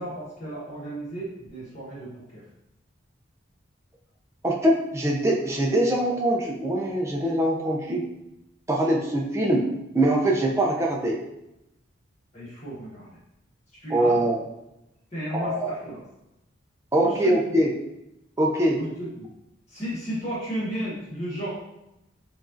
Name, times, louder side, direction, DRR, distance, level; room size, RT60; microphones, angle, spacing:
voice 1, 0.0-2.4 12.3-13.1 13.8-14.2 15.1-16.0 16.9-17.6 18.7-19.3 19.7-21.6, right 1 dB, 35° left, -9 dB, 1.3 m, -34 dB
voice 2, 4.4-8.0 8.7-9.7 9.9-11.2 13.9-14.4 15.3-15.7 16.9-17.7 18.4-18.8, right 1 dB, 15° right, -2 dB, 0.4 m, -23 dB
5.0 x 2.5 x 2.5 m, 0.88 s
head